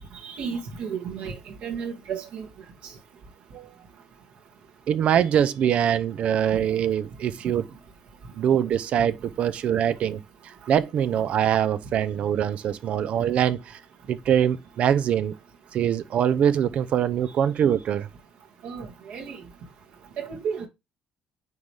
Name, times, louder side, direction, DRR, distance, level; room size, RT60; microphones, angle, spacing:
voice 1, 0.2-2.5 18.6-19.4 20.2-20.7, right 6 dB, 65° right, 2.2 m, -33 dB
voice 2, 4.9-7.6 8.4-10.2 10.7-13.8 14.1-15.3 15.7-18.1, right 9 dB, 50° right, 0.6 m, -23 dB
9.3 x 3.3 x 3.6 m
cardioid pair, 140°, 3 cm